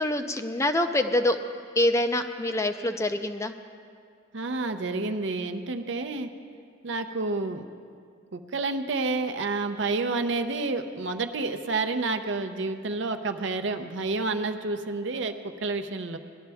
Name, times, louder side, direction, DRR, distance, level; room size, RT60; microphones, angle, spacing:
voice 1, 0.0-1.4 1.8-3.5, left 1 dB, 15° left, 8 dB, 0.4 m, -25 dB
voice 2, 4.3-6.3 6.8-7.6 8.3-16.2, right 3 dB, 65° right, 7 dB, 0.6 m, -29 dB
18.5 x 11.5 x 3.5 m, 2.2 s
head